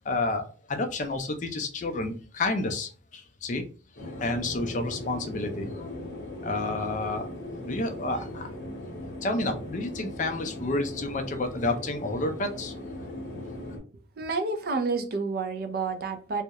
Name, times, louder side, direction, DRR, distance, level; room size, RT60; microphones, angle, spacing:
voice 1, 0.1-3.6 4.0-5.9 6.4-7.3 7.6-8.5 9.2-12.7, left 2 dB, 40° left, 0.4 m, -30 dB
sound 1, 4.0-13.8, left 1 dB, 60° left, 0.8 m, -39 dB
voice 2, 14.2-16.4, right 4 dB, 50° right, 0.4 m, -29 dB
2.3 x 2.0 x 2.7 m
head